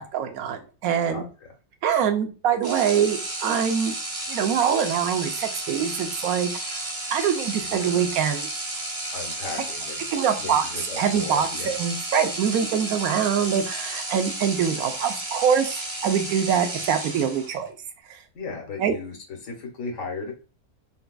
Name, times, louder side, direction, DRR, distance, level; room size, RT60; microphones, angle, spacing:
voice 1, 0.0-1.2 1.8-3.9 4.3-6.8 7.1-8.5 10.1-10.6 11.0-17.8 18.8-18.9, right 8 dB, 80° right, 6 dB, 1.0 m, -24 dB
voice 2, 1.1-1.5 7.6-8.1 9.1-10.1 10.4-11.7 18.3-20.3, left 4 dB, 65° left, 2 dB, 1.4 m, -36 dB
sound 1, 2.6-17.7, right 2 dB, 40° right, 0.4 m, -32 dB
4.1 x 2.2 x 2.3 m, 0.34 s
omnidirectional pair, 1.5 m